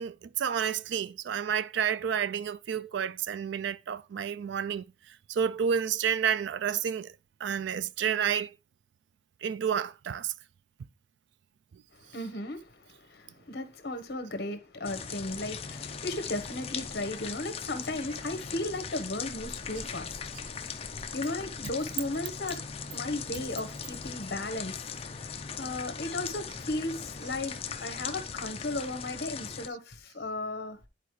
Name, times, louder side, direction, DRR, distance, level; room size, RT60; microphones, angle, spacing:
voice 1, 0.0-4.8 5.3-7.1 7.4-8.5 9.4-10.3 21.6-21.7, right 8 dB, 70° right, 0.3 m, -30 dB
voice 2, 11.9-30.9, left 2 dB, 55° left, 1.1 m, -36 dB
sound 1, 14.8-29.7, left 6 dB, 30° left, 0.5 m, -39 dB
10.0 x 4.2 x 3.2 m
head